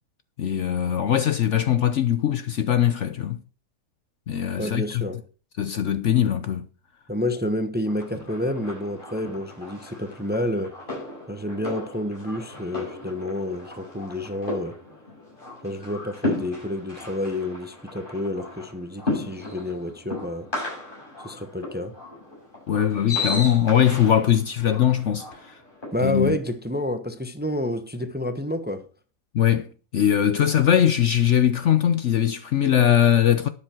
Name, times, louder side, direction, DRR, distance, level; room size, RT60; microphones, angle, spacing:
voice 1, 0.4-3.4 4.3-5.1 5.6-6.7 22.7-25.6 26.0-26.4 29.3-33.5, left 10 dB, 60° left, 0.9 m, -21 dB
voice 2, 4.6-5.2 7.1-10.7 11.3-14.8 15.6-20.5 21.2-21.9 25.9-28.8, left 1 dB, 10° right, 0.8 m, -29 dB
sound 1, 7.9-25.9, left 2 dB, 30° left, 7.6 m, -35 dB
12.5 x 9.9 x 4.5 m
omnidirectional pair, 1.6 m